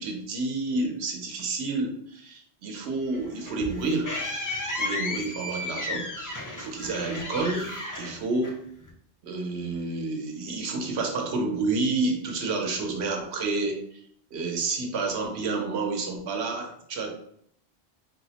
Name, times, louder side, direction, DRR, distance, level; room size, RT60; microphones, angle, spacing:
voice 1, 0.0-4.1 4.8-7.7 7.9-8.6 9.2-14.0 14.3-17.2, right 3 dB, 80° right, 3 dB, 0.9 m, -29 dB
sound 1, 3.1-8.9, left 2 dB, 35° left, 0.3 m, -34 dB
4.0 x 2.0 x 2.8 m, 0.67 s
omnidirectional pair, 1.1 m